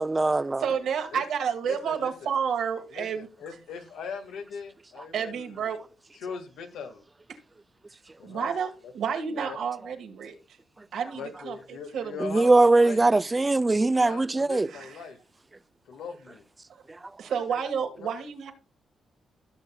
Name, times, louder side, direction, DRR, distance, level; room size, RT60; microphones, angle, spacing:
voice 1, 0.0-0.6 12.2-14.7, right 2 dB, 20° right, 0.3 m, -21 dB
voice 2, 0.6-3.3 5.1-5.8 8.2-10.3 10.9-12.4 14.7-15.0 16.7-16.8 17.2-18.5, right 7 dB, 80° right, 1.6 m, -30 dB
voice 3, 1.6-2.3 2.9-5.8 6.1-7.0 8.2-8.5 8.8-8.9 9.4-9.6 11.1-12.5 12.8-13.5 14.0-15.2 15.9-16.4 18.0-18.1, left 6 dB, 90° left, 1.6 m, -40 dB
16.0 x 6.4 x 2.3 m
cardioid pair, 75°, 0 cm